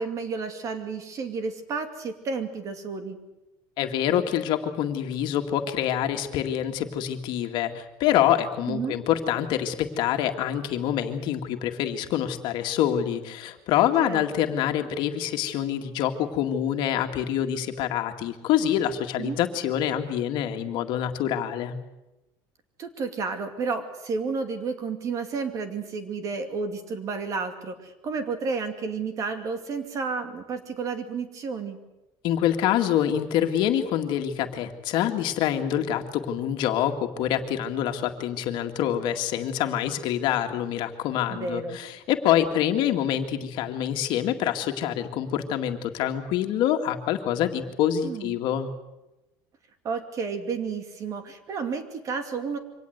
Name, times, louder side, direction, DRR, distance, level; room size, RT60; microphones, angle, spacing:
voice 1, 0.0-3.2 8.7-9.0 14.0-14.2 19.2-19.4 22.8-31.8 41.3-41.8 48.0-48.4 49.8-52.6, right 4 dB, 40° right, 8 dB, 2.5 m, -31 dB
voice 2, 3.8-21.8 32.2-48.7, left 10 dB, 60° left, 5 dB, 2.0 m, -26 dB
24.5 x 18.0 x 8.1 m, 0.96 s
cardioid pair, 150°, 9 cm